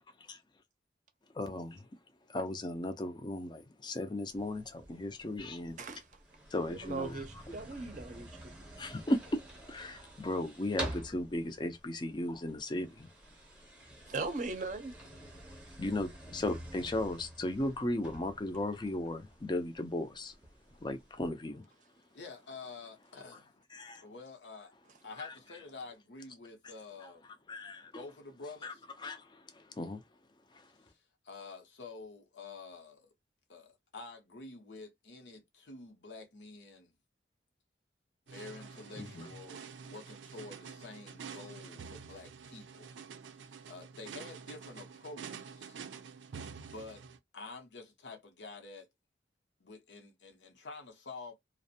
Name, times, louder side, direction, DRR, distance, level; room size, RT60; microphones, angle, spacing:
voice 1, 1.4-1.8 2.3-5.8 6.5-7.2 8.8-9.4 9.7-13.1 15.8-20.3 20.8-21.6 23.7-24.0 25.2-25.3 27.5-27.9 28.6-28.7 29.0-30.0 39.0-39.3, left 1 dB, 25° left, 0.4 m, -36 dB
sound 1, 4.3-21.3, right 1 dB, 5° right, 0.7 m, -48 dB
voice 2, 6.7-8.5 14.1-14.9, right 3 dB, 45° right, 0.6 m, -39 dB
voice 3, 22.1-23.5 24.0-24.7 25.0-27.3 27.9-28.9 30.8-33.1 33.5-36.9 38.3-42.9 43.3-45.9 46.3-47.0 47.3-48.9 49.6-51.3, left 3 dB, 80° left, 0.8 m, -49 dB
sound 2, 38.3-47.2, right 6 dB, 90° right, 0.4 m, -48 dB
2.5 x 2.0 x 2.7 m
head